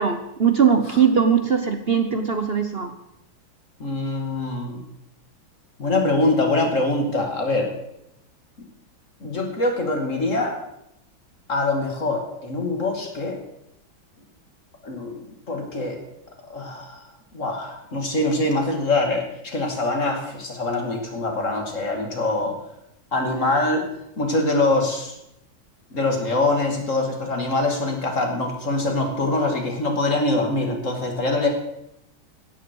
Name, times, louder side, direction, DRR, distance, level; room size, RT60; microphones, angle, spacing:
voice 1, 0.0-2.9, right 7 dB, 45° right, 8 dB, 0.8 m, -20 dB
voice 2, 3.8-4.8 5.8-7.7 9.2-10.6 11.5-13.4 14.8-15.1 15.5-16.0 16.5-17.0 17.3-22.6 23.1-23.8 24.2-25.1 25.9-31.5, left 2 dB, 40° left, 3 dB, 2.8 m, -24 dB
17.0 x 13.5 x 4.7 m, 0.81 s
omnidirectional pair, 2.2 m